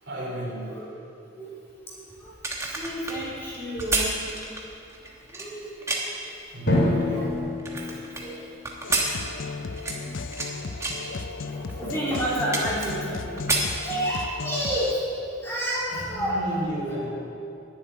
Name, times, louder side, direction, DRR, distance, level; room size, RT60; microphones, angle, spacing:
voice 1, 0.0-0.8 4.9-5.5 6.5-7.2 15.9-17.1, right 1 dB, 70° right, -4 dB, 3.2 m, -34 dB
voice 2, 1.3-2.3 2.6-4.3 5.2-5.7 6.0-7.3 7.9-8.5 9.1-9.7 10.0-11.1 11.4-15.0 15.4-16.4 16.9-17.0, equal, 15° left, -8 dB, 3.1 m, -32 dB
sound 1, 2.3-6.3 6.8-8.2 8.6-10.5 10.8-11.1 11.7-11.8 12.1-13.1 13.4-14.4 14.7-14.9, right 2 dB, 15° right, 1.2 m, -29 dB
Drum, 6.7-9.2, left 1 dB, 60° left, 2.5 m, -26 dB
sound 2, 8.8-14.9, left 4 dB, 90° left, 0.6 m, -35 dB
10.5 x 7.4 x 9.4 m, 2.7 s
head